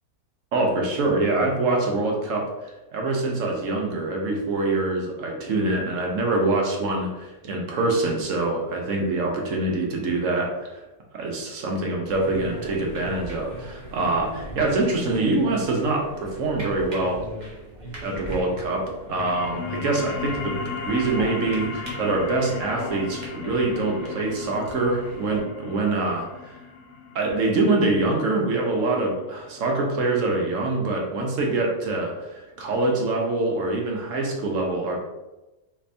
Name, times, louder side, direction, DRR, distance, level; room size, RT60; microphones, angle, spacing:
voice 1, 0.5-10.7 11.1-17.2 18.0-18.8 19.1-20.5 20.8-26.5 27.1-35.0, right 2 dB, 65° right, 0 dB, 1.0 m, -25 dB
sound 1, 12.1-25.4, right 1 dB, 40° right, 0.8 m, -38 dB
sound 2, 19.0-30.1, left 4 dB, 65° left, 0.8 m, -36 dB
3.4 x 2.6 x 3.2 m, 1.0 s
omnidirectional pair, 1.5 m